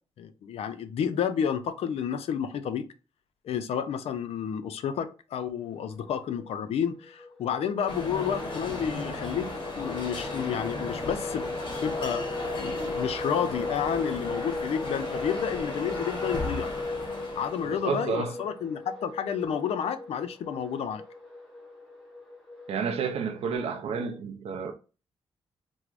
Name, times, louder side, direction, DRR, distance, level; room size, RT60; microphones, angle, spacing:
voice 1, 0.2-2.8 3.4-11.6 11.8-12.2 12.6-16.7 17.4-21.0, left 8 dB, 75° left, 0.4 m, -31 dB
sound 1, 5.8-23.6, left 2 dB, 5° left, 1.8 m, -38 dB
sound 2, 7.9-17.9, left 2 dB, 50° left, 1.1 m, -36 dB
voice 2, 17.7-18.4 22.7-24.7, right 5 dB, 75° right, 0.4 m, -30 dB
4.5 x 2.0 x 2.4 m
cardioid pair, 85°, 10 cm